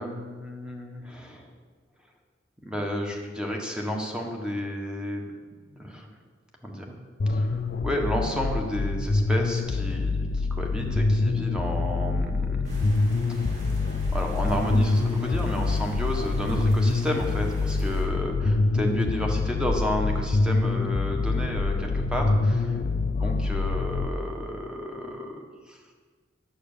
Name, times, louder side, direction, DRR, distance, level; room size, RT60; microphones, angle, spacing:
voice 1, 0.0-1.5 2.6-5.3 5.7-6.1 6.6-7.0 7.3-12.9 14.1-22.8 23.2-25.4 25.7-25.8, equal, 5° right, 1 dB, 1.5 m, -31 dB
sound 1, 7.2-24.1, left 3 dB, 50° left, 0.5 m, -25 dB
sound 2, 12.6-18.1, right 1 dB, 40° right, 2.6 m, -47 dB
9.7 x 8.0 x 6.8 m, 1.5 s
head